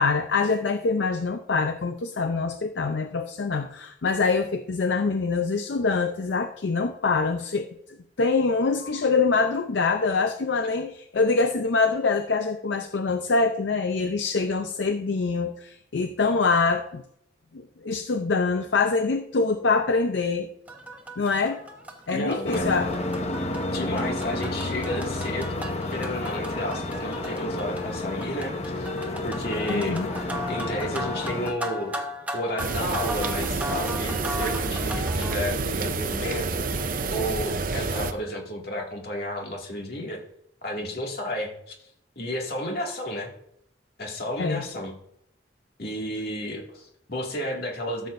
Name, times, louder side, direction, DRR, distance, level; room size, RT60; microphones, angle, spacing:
voice 1, 0.0-17.0 17.5-20.5 21.2-21.6 22.1-22.9 29.7-30.1 44.4-44.6, left 4 dB, 75° left, 7 dB, 0.6 m, -25 dB
sound 1, 20.7-35.4, equal, 10° right, 1.0 m, -37 dB
voice 2, 22.1-22.6 23.7-28.9 29.2-32.0 32.3-36.6 37.1-40.2 40.6-41.8 42.2-43.3 44.0-44.9 45.8-48.1, equal, 55° left, 0 dB, 2.1 m, -32 dB
sound 2, 22.4-31.5, left 2 dB, 35° left, 0.8 m, -30 dB
sound 3, 32.6-38.1, right 3 dB, 50° right, 0.6 m, -28 dB
13.5 x 7.3 x 2.6 m, 0.72 s
head